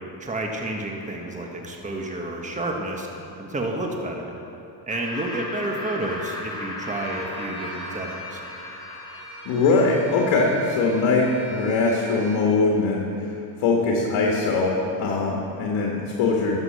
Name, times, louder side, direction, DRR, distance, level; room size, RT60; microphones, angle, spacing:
voice 1, 0.2-3.1 3.4-4.3 4.9-8.4, right 1 dB, 15° right, 1 dB, 1.4 m, -30 dB
Laughter, 4.9-10.2, left 1 dB, 10° left, 2.6 m, -36 dB
Bowed string instrument, 6.8-12.5, right 2 dB, 40° right, 2.9 m, -42 dB
voice 2, 9.5-13.1 13.6-16.6, left 3 dB, 65° left, -1 dB, 1.7 m, -21 dB
11.5 x 7.7 x 6.6 m, 3.0 s
supercardioid pair, 90°, 50 cm